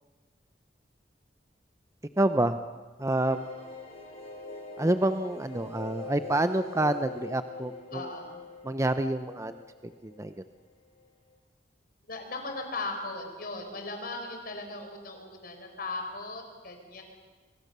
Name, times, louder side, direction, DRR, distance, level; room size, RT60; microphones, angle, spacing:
voice 1, 2.2-2.6 3.0-3.5 4.8-8.1 8.6-9.5 9.8-10.3, right 1 dB, 15° right, 10 dB, 0.7 m, -28 dB
sound 1, 3.2-10.7 11.0-11.1 11.3-11.4, left 2 dB, 35° left, 7.3 m, -44 dB
voice 2, 7.9-8.4 12.1-17.0, left 2 dB, 55° left, 4 dB, 4.7 m, -38 dB
29.5 x 24.5 x 6.9 m, 1.4 s
head